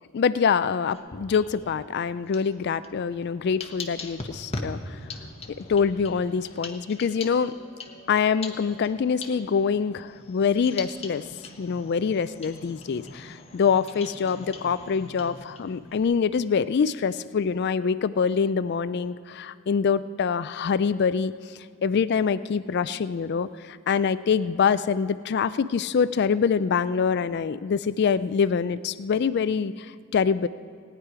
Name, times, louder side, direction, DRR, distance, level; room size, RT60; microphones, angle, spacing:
voice 1, 0.1-5.0 5.7-7.5 8.1-11.2 11.6-21.3 21.8-30.5, left 6 dB, 50° left, 14 dB, 0.3 m, -25 dB
sound 1, 0.9-1.9 2.3-16.0, left 3 dB, 25° left, 1.0 m, -41 dB
18.5 x 9.8 x 4.8 m, 2.3 s
head